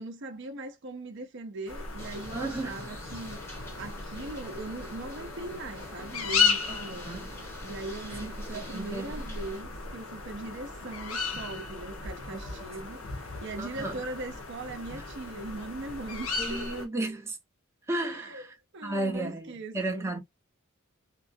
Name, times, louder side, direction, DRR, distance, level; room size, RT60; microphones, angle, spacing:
voice 1, 0.0-7.2 7.6-16.9 18.0-18.4 18.7-20.1, right 2 dB, 60° right, 0.6 m, -40 dB
sound 1, 1.7-16.8, left 5 dB, 85° left, 0.8 m, -35 dB
sound 2, 2.0-9.6, equal, 15° left, 0.9 m, -47 dB
voice 2, 2.3-2.8 6.7-7.3 8.2-9.2 12.3-12.6 13.6-14.0 16.4-17.4 17.9-18.6 18.8-20.2, right 2 dB, 15° right, 0.7 m, -34 dB
2.9 x 2.4 x 2.5 m
head